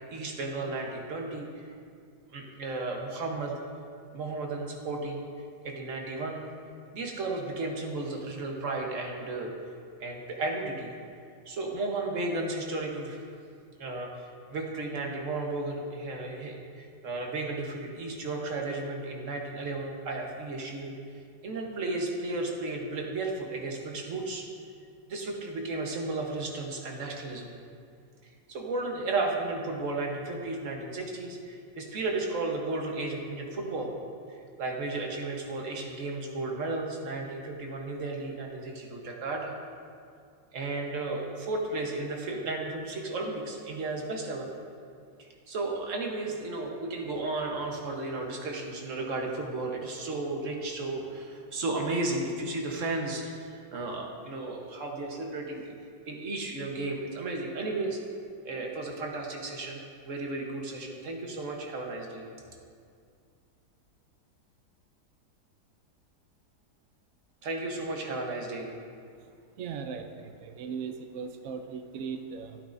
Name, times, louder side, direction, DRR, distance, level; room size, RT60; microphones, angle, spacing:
voice 1, 0.1-1.7 2.3-3.5 4.1-5.3 5.6-6.4 6.9-9.5 10.0-10.9 11.5-13.2 13.8-14.1 14.5-20.9 21.4-24.4 25.1-27.5 28.5-33.9 34.3-39.5 40.5-44.5 45.2-55.7 56.1-58.0 58.4-62.2 67.4-68.7, right 2 dB, 45° right, 1 dB, 1.3 m, -34 dB
voice 2, 69.6-72.6, right 6 dB, 85° right, 6 dB, 0.7 m, -38 dB
14.0 x 8.8 x 2.6 m, 2.3 s
omnidirectional pair, 2.1 m